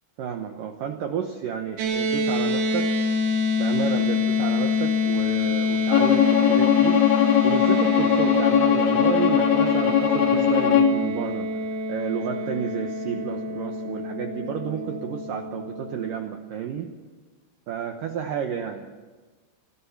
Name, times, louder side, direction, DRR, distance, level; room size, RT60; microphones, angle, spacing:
voice 1, 0.2-2.9 3.6-7.0 7.4-11.5 11.9-16.9 17.7-18.9, right 7 dB, 75° right, 5 dB, 2.0 m, -31 dB
sound 1, 1.8-16.2, left 4 dB, 60° right, 3.9 m, -26 dB
Bowed string instrument, 5.9-11.0, left 8 dB, 70° left, 2.7 m, -20 dB
24.5 x 15.0 x 7.2 m, 1.4 s
omnidirectional pair, 5.3 m